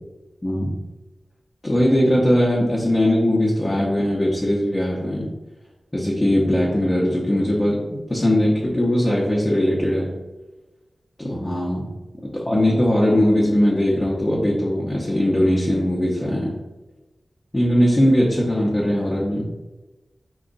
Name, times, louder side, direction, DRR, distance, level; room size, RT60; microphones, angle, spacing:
voice 1, 0.4-0.8 1.6-5.3 5.9-10.1 11.2-11.9 12.2-16.6 17.5-19.5, left 1 dB, 25° left, -5 dB, 0.8 m, -20 dB
4.9 x 2.3 x 3.8 m, 1.1 s
wide cardioid pair, 80°, 0 cm